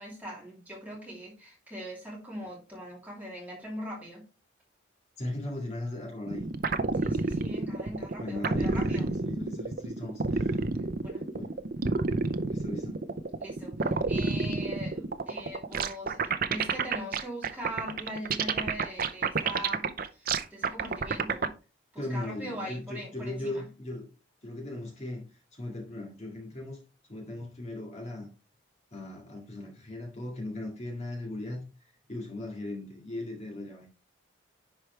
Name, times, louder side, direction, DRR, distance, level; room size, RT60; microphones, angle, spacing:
voice 1, 0.0-4.2 7.0-9.1 11.0-11.2 13.4-21.5 21.9-23.7, equal, 10° right, 2.9 m, -41 dB
voice 2, 5.2-6.5 8.2-10.7 11.4-11.5 12.5-13.0 22.0-24.1 24.4-26.8 27.1-28.3 28.9-31.6 32.1-33.9, left 1 dB, 35° left, 2.0 m, -38 dB
sound 1, 6.3-21.5, right 4 dB, 45° right, 0.6 m, -29 dB
10.5 x 4.7 x 3.2 m
head